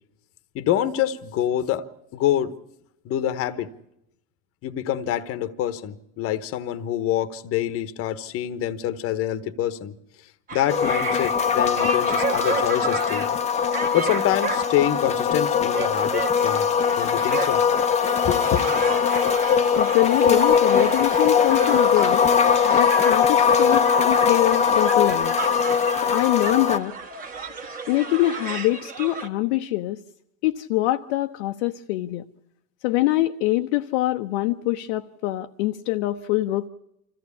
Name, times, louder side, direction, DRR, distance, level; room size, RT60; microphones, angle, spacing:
voice 1, 0.5-1.9 2.1-2.5 3.0-3.7 4.6-9.9 10.5-13.3 13.9-16.7 17.0-17.6 18.2-18.6, left 11 dB, 35° left, 1.1 m, -26 dB
sound 1, 10.5-29.3, right 5 dB, 20° right, 1.5 m, -33 dB
sound 2, 10.7-26.8, left 7 dB, 15° left, 0.8 m, -21 dB
voice 2, 19.7-22.2 22.6-25.3 26.0-26.9 27.9-30.0 30.4-32.2 32.8-36.7, left 16 dB, 60° left, 0.8 m, -24 dB
25.5 x 14.5 x 8.4 m
supercardioid pair, 125°, 39 cm